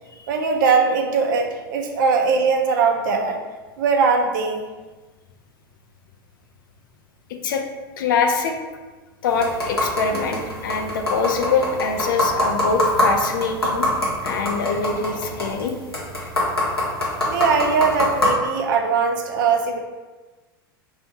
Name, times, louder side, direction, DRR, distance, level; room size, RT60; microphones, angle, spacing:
voice 1, 0.3-3.4 3.8-4.7 15.5-15.6 17.3-19.8, right 5 dB, 55° right, 3 dB, 0.5 m, -20 dB
voice 2, 8.0-8.6 9.2-13.9 14.2-15.7, left 4 dB, 60° left, 4 dB, 0.4 m, -23 dB
sound 1, 9.3-18.3, left 1 dB, 85° left, 0.8 m, -25 dB
2.5 x 2.4 x 4.0 m, 1.3 s
figure-of-eight pair, 85°, 12 cm